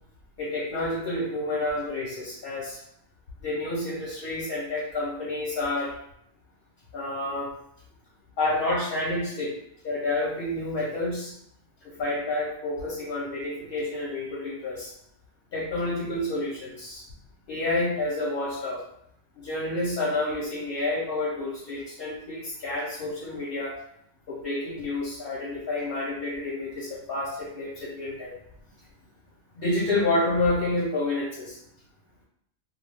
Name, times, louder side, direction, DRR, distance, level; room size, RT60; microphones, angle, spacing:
voice 1, 0.4-2.8 3.4-5.9 6.9-7.5 8.4-9.5 9.8-11.3 11.8-14.9 15.5-17.0 17.5-18.8 19.4-23.8 24.3-28.4 29.5-31.6, left 2 dB, 55° left, -4 dB, 0.7 m, -29 dB
2.3 x 2.2 x 3.3 m, 0.70 s
omnidirectional pair, 1.4 m